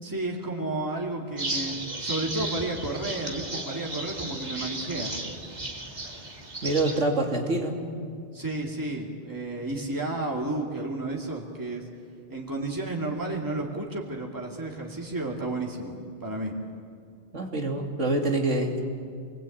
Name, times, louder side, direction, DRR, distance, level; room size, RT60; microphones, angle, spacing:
voice 1, 0.0-5.1 8.3-11.8 12.3-15.9 16.2-16.5, right 2 dB, 15° right, -1 dB, 2.7 m, -32 dB
sound 1, 1.4-7.0, right 2 dB, 35° right, 2.2 m, -34 dB
voice 2, 6.6-7.8 17.3-18.8, right 2 dB, 90° right, 2 dB, 3.0 m, -26 dB
28.0 x 21.0 x 8.7 m, 2.3 s
omnidirectional pair, 1.2 m